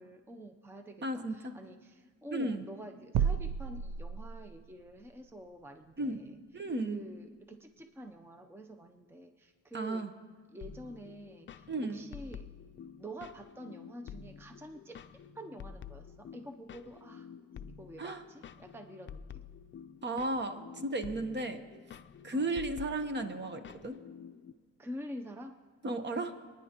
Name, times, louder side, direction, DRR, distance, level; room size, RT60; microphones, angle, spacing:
voice 1, 0.0-6.4 6.8-10.1 10.5-12.5 13.0-15.0 15.3-17.3 17.8-19.5 22.3-22.5 24.8-25.6, right 1 dB, 10° right, 7 dB, 0.7 m, -47 dB
voice 2, 1.0-1.5 2.3-2.6 6.0-6.2 6.5-7.0 9.7-10.1 11.7-12.0 18.0-18.2 20.0-21.6 22.2-24.0 25.8-26.3, right 2 dB, 35° right, 8 dB, 1.1 m, -34 dB
sound 1, 3.1-4.7, right 7 dB, 80° right, 0.6 m, -32 dB
sound 2, 10.6-24.5, left 7 dB, 40° left, 0.5 m, -49 dB
27.0 x 10.0 x 3.0 m, 1.5 s
cardioid pair, 90°, 30 cm